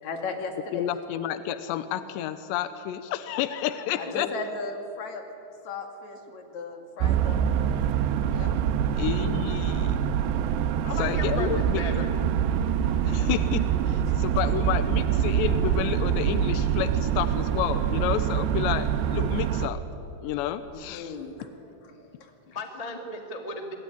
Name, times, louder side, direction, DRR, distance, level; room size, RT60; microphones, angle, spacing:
voice 1, 0.0-0.9 4.0-5.2 5.6-7.9 8.3-8.6 14.1-14.4 20.7-22.6, left 3 dB, 45° left, 4 dB, 3.2 m, -37 dB
voice 2, 0.7-4.3 9.0-10.0 11.0-12.0 13.0-19.8 20.2-21.1, left 11 dB, 85° left, 11 dB, 3.1 m, -30 dB
sound 1, 7.0-19.7, right 9 dB, 75° right, 3.0 m, -25 dB
voice 3, 9.5-10.1 10.8-12.1 13.1-13.3 22.5-23.7, left 2 dB, 20° left, 4 dB, 0.9 m, -37 dB
26.0 x 21.5 x 9.9 m, 2.7 s
omnidirectional pair, 5.1 m